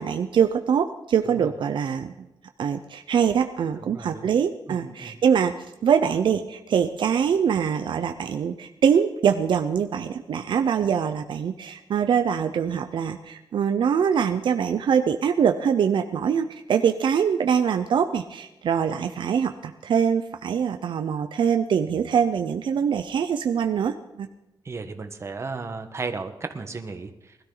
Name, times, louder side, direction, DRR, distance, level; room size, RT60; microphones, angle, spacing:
voice 1, 0.0-2.3 2.6-5.5 5.8-24.3, right 7 dB, 70° right, 7 dB, 0.7 m, -23 dB
voice 2, 3.8-4.3 4.7-5.2 24.6-27.4, right 4 dB, 35° right, 7 dB, 1.3 m, -35 dB
20.0 x 13.0 x 4.0 m, 0.94 s
wide cardioid pair, 130°, 8 cm